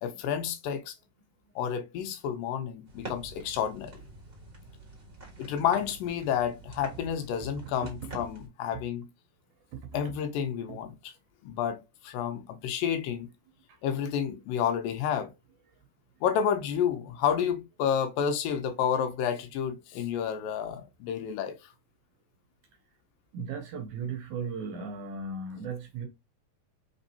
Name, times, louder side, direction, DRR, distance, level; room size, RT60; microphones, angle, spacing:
voice 1, 0.0-0.9 1.6-3.9 5.4-9.1 9.9-10.9 11.4-13.3 13.8-15.3 16.2-21.7, left 8 dB, 80° left, 2.3 m, -30 dB
sound 1, 2.9-8.5, right 2 dB, 35° right, 0.8 m, -46 dB
voice 2, 7.4-7.7 8.0-8.1 9.7-10.1 10.7-10.8 13.7-13.8 23.3-26.1, right 5 dB, 75° right, 1.9 m, -37 dB
5.1 x 3.5 x 2.7 m
omnidirectional pair, 4.1 m